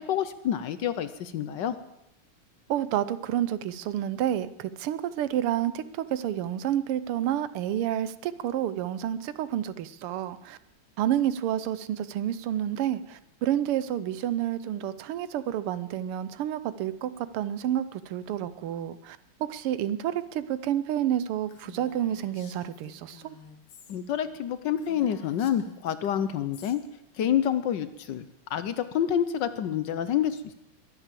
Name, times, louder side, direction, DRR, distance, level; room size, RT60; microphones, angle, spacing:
voice 1, 0.0-1.8 23.9-26.8 27.2-30.5, left 9 dB, 65° left, 12 dB, 1.2 m, -28 dB
voice 2, 2.7-10.6 11.0-23.3, right 11 dB, 90° right, 14 dB, 1.7 m, -29 dB
Female speech woman speaking, 21.5-24.0 24.3-24.4 24.7-26.8, left 6 dB, 80° left, 2.3 m, -51 dB
22.0 x 8.2 x 7.6 m, 0.88 s
omnidirectional pair, 2.4 m